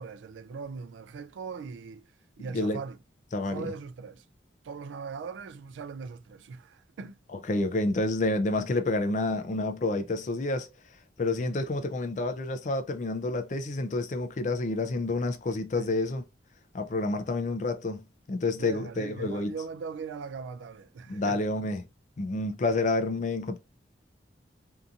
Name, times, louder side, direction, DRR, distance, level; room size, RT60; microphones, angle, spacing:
voice 1, 0.0-2.1 2.4-3.0 3.5-4.2 4.6-7.2 11.4-11.6 15.8-15.9 18.6-21.4, right 5 dB, 85° right, 0.3 m, -40 dB
voice 2, 3.3-3.7 7.5-10.7 11.2-16.2 16.7-18.0 18.3-19.5 21.1-21.8 22.2-23.6, left 2 dB, 40° left, 0.4 m, -29 dB
2.7 x 2.5 x 2.3 m
head